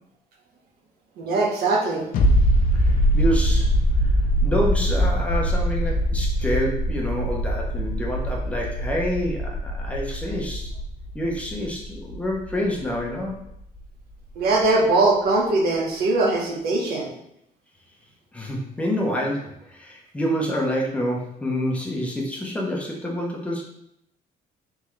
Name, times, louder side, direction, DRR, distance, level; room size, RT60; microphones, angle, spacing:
voice 1, 1.2-2.1 14.4-17.1, right 2 dB, 90° right, -1 dB, 1.0 m, -21 dB
sound 1, 2.1-13.5 13.8-13.9, equal, 70° left, 0.6 m, -23 dB
voice 2, 2.7-3.7 4.4-10.7 11.1-13.4 18.3-23.6, equal, 10° left, -3 dB, 0.8 m, -27 dB
3.7 x 3.6 x 3.1 m, 0.78 s
cardioid pair, 140°, 15 cm